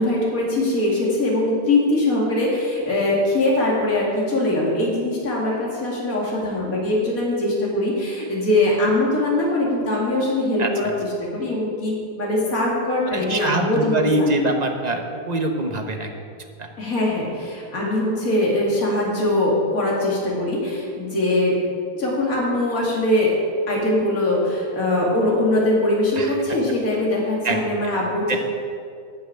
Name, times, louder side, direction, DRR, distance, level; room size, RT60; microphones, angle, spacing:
voice 1, 0.0-10.9 11.2-14.3 16.8-23.3 23.7-28.4, left 1 dB, 60° left, -4 dB, 3.0 m, -22 dB
voice 2, 13.1-16.1 16.6-16.7 26.2-26.4 27.4-27.6 28.3-28.4, right 2 dB, 30° right, 3 dB, 1.1 m, -24 dB
13.0 x 6.1 x 9.0 m, 2.3 s
omnidirectional pair, 1.7 m